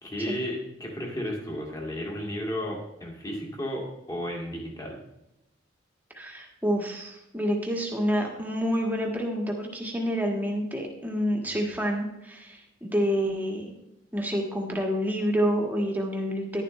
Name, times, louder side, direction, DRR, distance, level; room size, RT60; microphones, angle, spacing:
voice 1, 0.0-5.0, equal, 20° left, 0 dB, 2.2 m, -33 dB
voice 2, 6.1-13.7 14.1-16.6, equal, 10° right, 0 dB, 1.6 m, -28 dB
11.0 x 11.0 x 3.2 m, 0.90 s
head